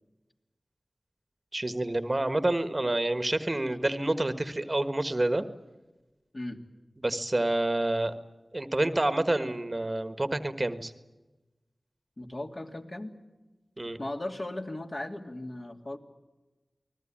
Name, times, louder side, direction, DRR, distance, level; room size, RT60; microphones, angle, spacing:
voice 1, 1.5-5.4 7.0-8.1 8.5-10.9 13.8-14.0, right 1 dB, 35° right, 10 dB, 1.5 m, -28 dB
voice 2, 12.2-13.1 14.0-16.0, left 1 dB, 45° left, 2 dB, 2.8 m, -37 dB
29.0 x 20.0 x 8.8 m, 1.1 s
wide cardioid pair, 55°, 0 cm